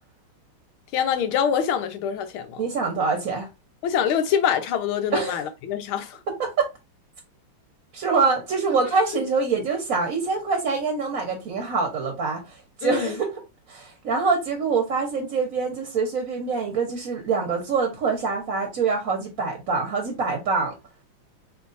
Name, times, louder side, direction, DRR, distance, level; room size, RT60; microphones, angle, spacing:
voice 1, 0.9-2.6 3.8-6.2 12.8-13.2, left 8 dB, 90° left, 1.6 m, -25 dB
voice 2, 2.6-3.5 5.1-5.4 6.4-6.7 7.9-13.3 13.7-20.7, right 4 dB, 50° right, 1.2 m, -25 dB
4.5 x 3.7 x 2.5 m
omnidirectional pair, 2.2 m